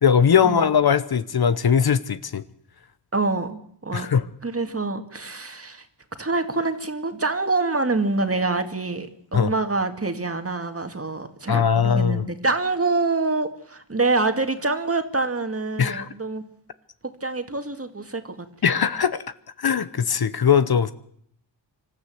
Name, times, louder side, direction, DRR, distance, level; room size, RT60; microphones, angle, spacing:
voice 1, 0.0-2.4 3.9-4.3 9.3-9.5 11.5-12.3 15.8-16.1 18.6-19.2 19.6-20.9, left 7 dB, 60° left, 14 dB, 0.9 m, -20 dB
voice 2, 3.1-4.1 4.4-5.9 6.2-16.4 17.2-18.5, right 3 dB, 30° right, 7 dB, 2.0 m, -26 dB
26.0 x 13.0 x 7.8 m, 0.69 s
wide cardioid pair, 80°, 43 cm